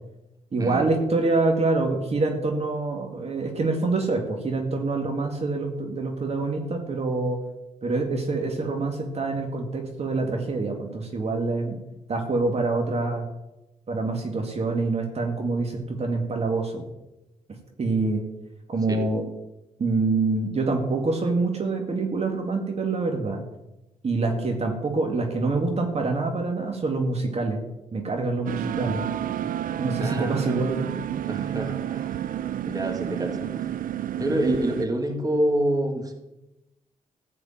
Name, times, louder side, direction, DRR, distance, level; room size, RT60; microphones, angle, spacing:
voice 1, 0.5-7.4 7.8-11.8 12.1-13.2 13.9-16.8 17.8-18.2 18.7-19.2 19.8-23.4 24.0-27.7 27.9-29.0 29.8-30.8, right 3 dB, 50° right, 2 dB, 2.1 m, -26 dB
sound 1, 28.5-34.9, right 11 dB, 75° right, 0.5 m, -30 dB
voice 2, 30.0-30.6 31.3-32.3 32.7-33.7 34.1-36.1, right 1 dB, 25° right, 3 dB, 2.2 m, -27 dB
14.0 x 4.9 x 8.9 m, 0.95 s
cardioid pair, 80°, 14 cm